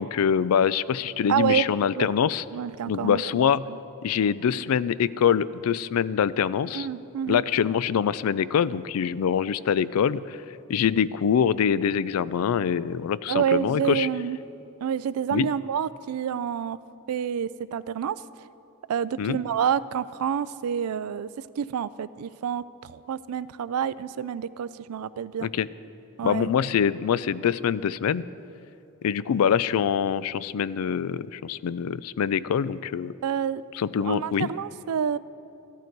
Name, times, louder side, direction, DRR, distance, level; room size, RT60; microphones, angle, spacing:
voice 1, 0.0-2.4 2.9-3.7 4.0-6.9 7.3-14.1 15.3-15.5 19.2-19.4 25.4-25.7 26.2-28.3 29.0-33.1 33.7-34.5, left 7 dB, 80° left, 18 dB, 0.4 m, -24 dB
voice 2, 1.3-1.7 2.0-2.1 2.5-3.8 6.7-7.4 13.3-14.4 14.8-16.8 17.1-18.2 18.9-21.3 21.6-25.5 26.2-26.5 33.2-33.6 34.0-35.2, right 8 dB, 85° right, 17 dB, 0.4 m, -28 dB
14.5 x 12.0 x 4.6 m, 2.7 s
head